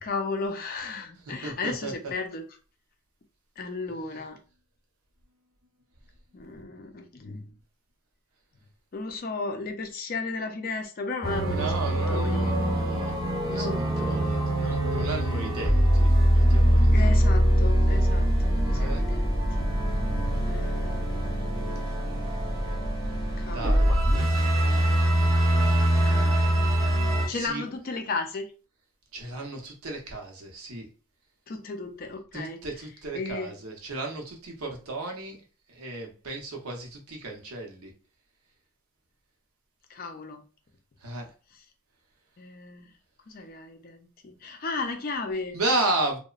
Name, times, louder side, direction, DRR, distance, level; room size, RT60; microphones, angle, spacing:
voice 1, 0.0-2.5 3.6-4.4 6.3-7.5 8.9-12.5 13.5-13.8 16.9-19.7 20.5-21.5 23.4-23.8 26.0-26.5 26.7-27.0 27.3-28.5 31.5-32.6 33.1-33.5 39.9-40.4 42.4-42.9 43.3-45.6, left 3 dB, 40° left, 0.4 m, -35 dB
voice 2, 1.3-1.9 4.1-4.2 11.4-13.1 13.4-17.1 18.7-19.0 23.5-24.0 27.3-27.6 29.1-30.9 32.3-35.4 35.7-37.9 41.0-41.3 45.5-46.2, right 2 dB, 80° right, 0.7 m, -34 dB
sound 1, 11.2-27.3, equal, 20° right, 0.7 m, -23 dB
2.9 x 2.0 x 2.3 m
head